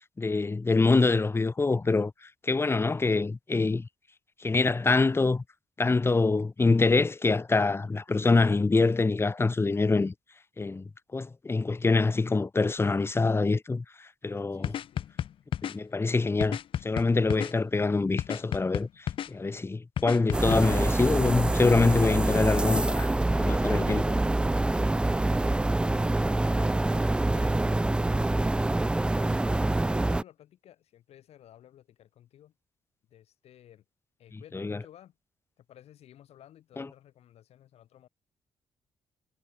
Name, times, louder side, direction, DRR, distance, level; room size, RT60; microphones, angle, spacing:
voice 1, 0.2-2.1 2.4-3.9 4.4-5.4 5.8-10.1 10.6-14.8 15.6-24.2 34.5-34.8 36.8-36.9, left 3 dB, 25° left, 2.2 m, -25 dB
voice 2, 14.5-15.1 29.3-32.5 33.1-33.8 34.2-35.1 35.6-38.1, left 11 dB, 80° left, 7.5 m, -54 dB
sound 1, 14.6-15.7 16.4-17.5 18.2-19.3 20.0-20.6, left 10 dB, 55° left, 0.4 m, -32 dB
sound 2, 20.3-30.2, right 2 dB, 10° right, 0.4 m, -26 dB
cardioid pair, 100°, 10 cm